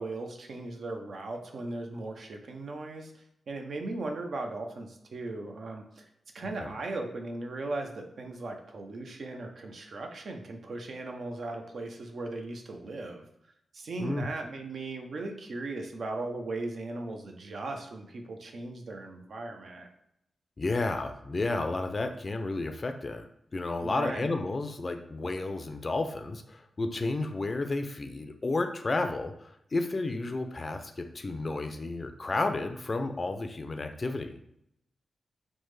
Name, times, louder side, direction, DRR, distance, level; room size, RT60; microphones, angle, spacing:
voice 1, 0.0-6.0 6.3-13.2 13.7-19.9 23.8-24.3, right 2 dB, 70° right, 3 dB, 0.5 m, -38 dB
voice 2, 20.6-34.4, left 2 dB, 45° left, 6 dB, 0.4 m, -32 dB
3.3 x 2.1 x 3.2 m, 0.76 s
cardioid pair, 50°, 0 cm